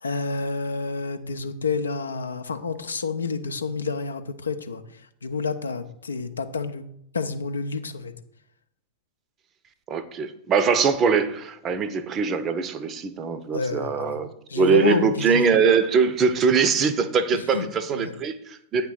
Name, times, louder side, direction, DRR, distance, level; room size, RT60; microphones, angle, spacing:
voice 1, 0.0-4.8 5.2-6.8 7.1-8.1 13.5-14.2 14.5-15.5 17.3-18.1, left 4 dB, 75° left, 9 dB, 0.6 m, -29 dB
voice 2, 9.9-18.9, right 6 dB, 30° right, 13 dB, 0.6 m, -22 dB
8.7 x 3.6 x 5.7 m, 0.71 s
figure-of-eight pair, 90°, 0 cm